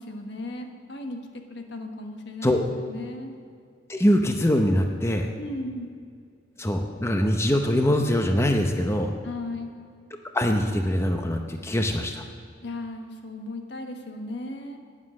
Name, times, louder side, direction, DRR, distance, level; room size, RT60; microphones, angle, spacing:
voice 1, 0.0-3.3 5.4-5.9 9.2-9.7 12.6-14.8, left 2 dB, 65° left, 5 dB, 1.3 m, -36 dB
voice 2, 3.9-5.3 6.6-9.1 10.3-12.2, equal, 15° left, 4 dB, 0.7 m, -23 dB
11.5 x 9.7 x 6.3 m, 2.2 s
head